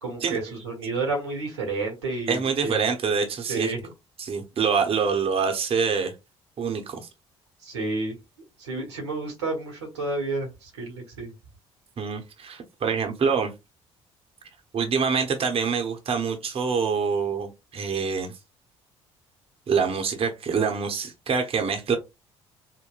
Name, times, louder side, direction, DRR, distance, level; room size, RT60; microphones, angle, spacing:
voice 1, 0.0-2.8 3.5-3.9 7.6-8.1 8.6-11.3, right 3 dB, 90° right, 1.1 m, -30 dB
voice 2, 2.3-3.7 4.2-6.1 6.6-7.1 12.0-13.5 14.7-18.3 19.7-22.0, right 6 dB, 40° right, 0.8 m, -25 dB
3.8 x 2.1 x 2.4 m
hypercardioid pair, 55°, 14 cm